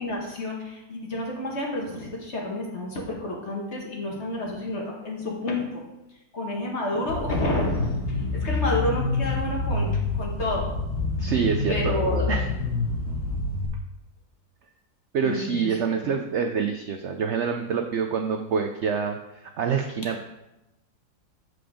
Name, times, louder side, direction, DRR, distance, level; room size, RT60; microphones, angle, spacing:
voice 1, 0.0-5.8 6.3-10.7 11.7-12.3 15.2-15.8, left 1 dB, 45° left, -2 dB, 1.8 m, -30 dB
sound 1, 7.1-13.7, left 3 dB, 75° left, 1.6 m, -27 dB
voice 2, 11.2-12.0 12.3-12.5 15.1-20.2, right 6 dB, 70° right, 5 dB, 0.6 m, -26 dB
7.8 x 5.0 x 5.0 m, 0.94 s
omnidirectional pair, 1.7 m